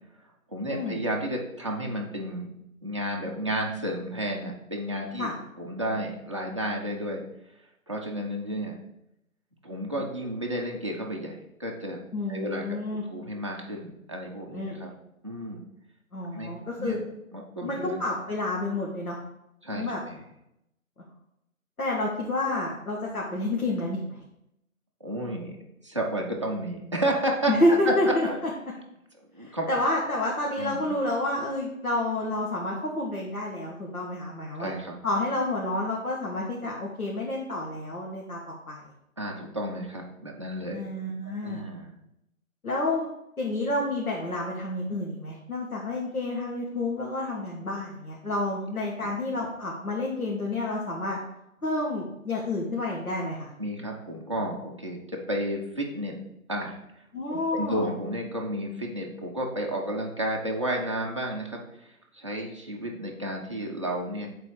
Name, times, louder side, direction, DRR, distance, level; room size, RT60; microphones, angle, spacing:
voice 1, 0.5-2.5 2.8-5.3 5.6-7.2 7.9-8.7 9.6-12.0 12.3-12.6 13.1-14.9 15.2-15.6 16.3-16.5 16.8-17.0 17.3-18.0 19.6-20.2 25.0-25.6 25.8-27.5 27.9-28.4 29.3-29.7 30.6-30.8 34.6-35.0 39.2-40.8 41.4-41.9 53.6-56.2 56.5-57.0 57.3-61.9 62.1-64.3, right 1 dB, 20° right, -2 dB, 0.6 m, -32 dB
voice 2, 12.1-13.0 14.5-14.8 16.1-17.0 17.6-19.2 19.7-20.0 21.8-24.2 27.5-28.3 29.4-34.7 35.0-38.4 38.7-38.8 40.7-41.6 42.6-43.1 43.4-51.2 51.6-53.5 57.1-57.9, left 2 dB, 90° left, -3 dB, 1.7 m, -29 dB
7.2 x 4.2 x 4.9 m, 0.83 s
figure-of-eight pair, 155°, 42 cm